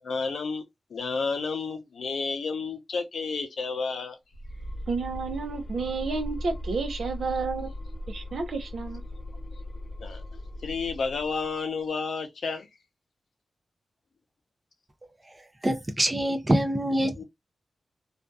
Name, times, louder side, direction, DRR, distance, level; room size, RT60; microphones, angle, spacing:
voice 1, 0.0-0.6 0.9-4.2 10.0-10.2 10.6-12.7 17.2-17.3, left 4 dB, 90° left, 0.6 m, -31 dB
sound 1, 4.3-11.6, left 1 dB, 50° left, 0.8 m, -38 dB
voice 2, 4.9-7.7 8.1-9.0, right 4 dB, 80° right, 0.7 m, -31 dB
voice 3, 15.6-17.2, right 1 dB, 20° right, 0.5 m, -25 dB
2.6 x 2.4 x 2.3 m
wide cardioid pair, 150°, 0 cm